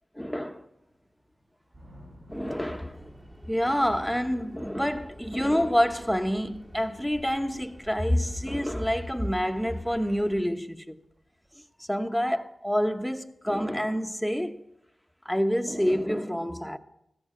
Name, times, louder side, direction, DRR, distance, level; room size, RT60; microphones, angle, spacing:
voice 1, 0.2-0.6 2.3-3.1 3.5-11.0 11.9-14.6 15.2-16.8, equal, 5° left, 1.1 m, -27 dB
sound 1, 0.8-10.0 10.4-10.5 10.8-10.9 11.0-11.6 13.2-13.3 14.2-14.3, equal, 50° right, 6.4 m, -55 dB
sound 2, 2.3-10.4, equal, 25° right, 2.2 m, -49 dB
15.5 x 13.5 x 5.1 m
cardioid pair, 40°, 0 cm